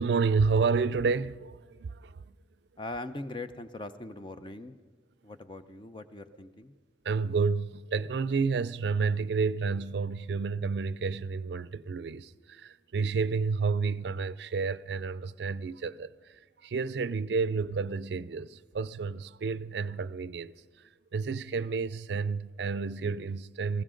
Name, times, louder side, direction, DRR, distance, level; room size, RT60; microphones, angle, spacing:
voice 1, 0.0-2.2 7.0-20.5 21.1-23.8, right 4 dB, 70° right, 0.4 m, -30 dB
voice 2, 2.8-4.8 5.2-6.7, left 2 dB, 25° left, 0.6 m, -41 dB
19.5 x 15.5 x 3.8 m
head